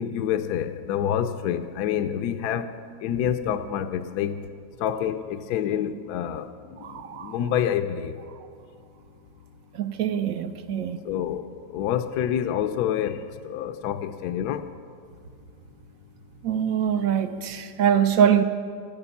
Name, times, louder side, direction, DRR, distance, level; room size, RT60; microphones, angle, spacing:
voice 1, 0.0-2.7 3.0-4.3 4.8-6.5 7.2-8.1 11.1-11.4 11.7-13.2 13.4-14.6, left 9 dB, 70° left, 1.0 m, -27 dB
voice 2, 6.8-7.4 9.7-11.0 16.4-18.4, right 8 dB, 65° right, 0.9 m, -23 dB
13.5 x 10.5 x 7.0 m
omnidirectional pair, 1.9 m